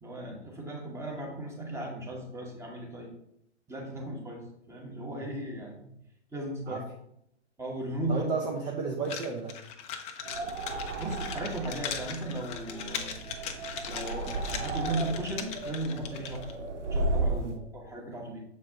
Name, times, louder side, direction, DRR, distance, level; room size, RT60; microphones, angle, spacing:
voice 1, 0.0-3.1 3.7-5.9 6.3-6.8 7.6-8.2 11.0-13.2 13.9-16.4 16.9-18.4, right 1 dB, 10° right, 0 dB, 1.3 m, -36 dB
voice 2, 8.1-9.6 17.3-17.6, right 4 dB, 25° right, 1 dB, 0.8 m, -33 dB
sound 1, 9.0-16.5, left 7 dB, 20° left, 0.6 m, -39 dB
sound 2, 10.2-17.5, right 2 dB, 80° right, 1.1 m, -34 dB
7.1 x 4.7 x 3.6 m, 0.77 s
hypercardioid pair, 120°, 35 cm